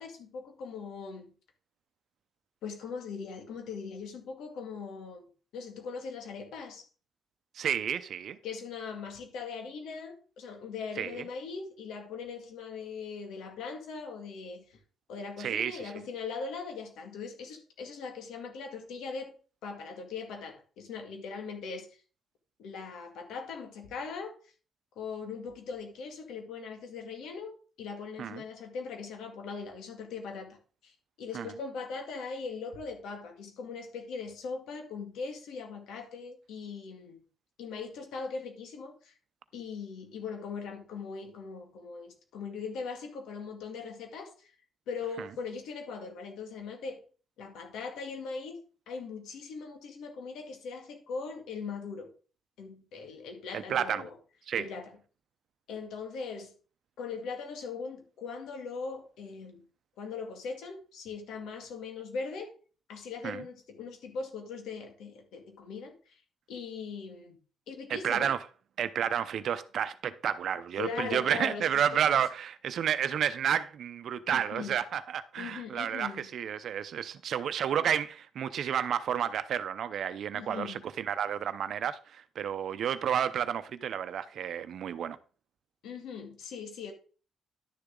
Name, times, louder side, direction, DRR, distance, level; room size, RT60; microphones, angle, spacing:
voice 1, 0.0-1.3 2.6-5.3 5.5-6.9 8.4-14.8 15.1-19.3 19.6-21.9 22.6-24.4 25.0-30.6 30.8-30.9 31.2-37.2 37.6-39.1 39.5-44.5 44.9-47.0 47.4-48.6 48.9-52.1 52.6-54.1 54.5-54.9 55.7-56.5 57.0-59.6 60.0-62.5 62.9-66.2 66.5-67.4 67.7-68.3 70.8-71.7 71.9-72.1 74.3-74.8 75.4-76.3 80.3-80.8 85.8-86.9, left 5 dB, 85° left, 2.1 m, -40 dB
voice 2, 7.5-8.4 11.0-11.3 15.4-15.9 28.2-28.4 31.3-31.5 45.2-45.3 53.5-54.0 54.5-54.6 63.2-63.4 67.9-68.4 68.8-85.2, right 9 dB, 65° right, 0.7 m, -31 dB
11.0 x 6.8 x 3.8 m
cardioid pair, 100°, 0 cm